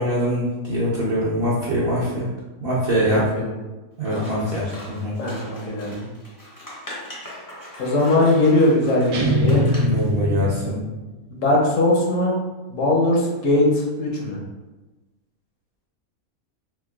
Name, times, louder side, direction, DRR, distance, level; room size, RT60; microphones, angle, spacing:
voice 1, 0.0-2.3 2.6-3.2 4.0-5.1 9.8-10.8, equal, 55° right, -7 dB, 0.7 m, -23 dB
voice 2, 3.1-3.4 4.1-4.5 5.2-6.1 7.8-9.6 11.3-12.3 12.7-14.4, left 1 dB, 65° left, -2 dB, 1.0 m, -20 dB
Scissors, 4.0-10.1, equal, 25° left, 0.4 m, -41 dB
sound 1, 9.1-11.2, equal, 80° right, 1.1 m, -22 dB
4.4 x 2.1 x 2.2 m, 1.2 s
omnidirectional pair, 1.5 m